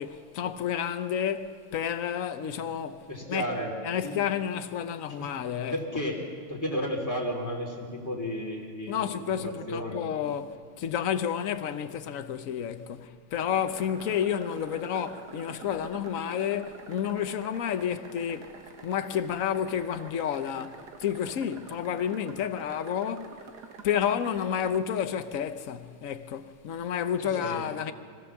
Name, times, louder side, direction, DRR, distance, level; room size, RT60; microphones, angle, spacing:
voice 1, 0.0-3.5 3.8-5.7 6.7-6.9 8.9-18.6 18.8-23.5 23.8-27.9, left 9 dB, 60° left, 0.8 m, -30 dB
voice 2, 3.1-3.7 4.0-4.2 5.7-6.2 6.5-10.0 27.2-27.7, equal, 10° left, 3.1 m, -33 dB
sound 1, 13.5-24.8, right 5 dB, 55° right, 1.6 m, -47 dB
25.0 x 15.5 x 7.1 m
omnidirectional pair, 2.4 m